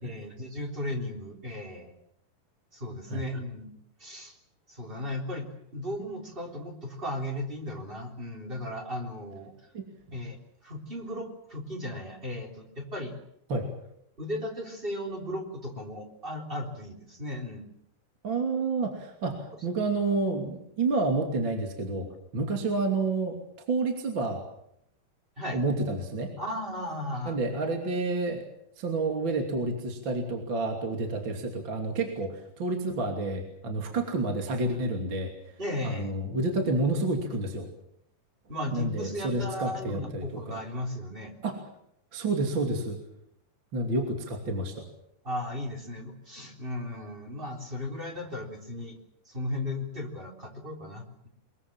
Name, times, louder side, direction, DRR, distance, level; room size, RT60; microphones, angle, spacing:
voice 1, 0.0-1.9 2.7-3.7 4.0-4.3 4.7-9.5 10.1-10.4 10.6-13.1 14.2-17.7 25.4-25.6 26.4-27.4 35.6-36.2 38.5-41.4 45.2-49.0 49.3-51.3, left 1 dB, 15° right, 3 dB, 3.2 m, -36 dB
voice 2, 9.7-10.2 13.5-13.7 18.2-23.4 23.7-24.4 25.5-26.3 27.3-28.4 28.8-35.5 35.8-37.7 38.7-40.6 41.4-41.6 42.1-43.0 43.7-44.9, right 2 dB, 35° right, 3 dB, 3.0 m, -29 dB
23.5 x 22.0 x 7.4 m, 0.74 s
omnidirectional pair, 4.5 m